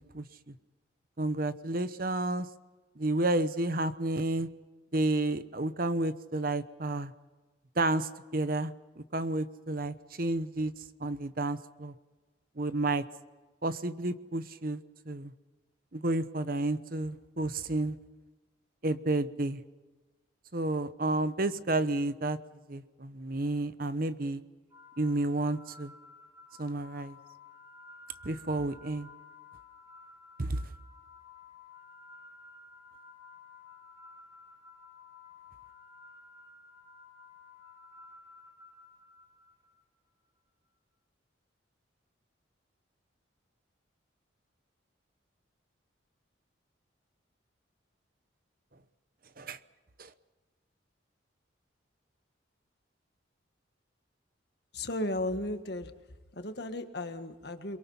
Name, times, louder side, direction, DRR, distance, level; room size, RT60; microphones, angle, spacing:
voice 1, 0.1-0.5 1.2-2.5 3.0-4.5 4.9-7.1 7.8-10.7 11.0-11.9 12.6-13.0 13.6-15.3 15.9-18.0 18.8-19.6 20.5-22.4 22.7-24.4 25.0-25.9 26.6-27.2 28.2-29.1 30.4-30.6 49.4-49.6 50.0-50.1, right 2 dB, 45° right, 12 dB, 0.9 m, -31 dB
sound 1, 24.7-39.8, left 4 dB, 20° right, 3.9 m, -54 dB
voice 2, 54.7-55.9 56.3-57.8, left 1 dB, 55° left, 7 dB, 1.7 m, -35 dB
29.5 x 22.5 x 5.7 m, 1.3 s
head